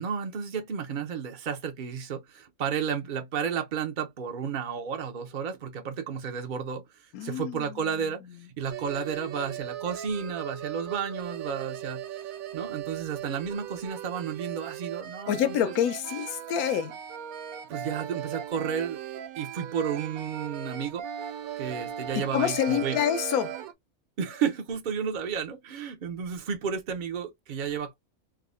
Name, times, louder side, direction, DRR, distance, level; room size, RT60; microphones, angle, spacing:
voice 1, 0.0-15.7 17.7-19.0 19.4-23.0 24.2-27.9, right 7 dB, 60° right, 0.5 m, -32 dB
voice 2, 7.1-7.8 15.3-16.9 22.1-23.5, left 10 dB, 85° left, 1.0 m, -27 dB
sound 1, 8.7-23.7, right 10 dB, 80° right, 1.0 m, -38 dB
3.6 x 2.0 x 2.4 m
omnidirectional pair, 1.5 m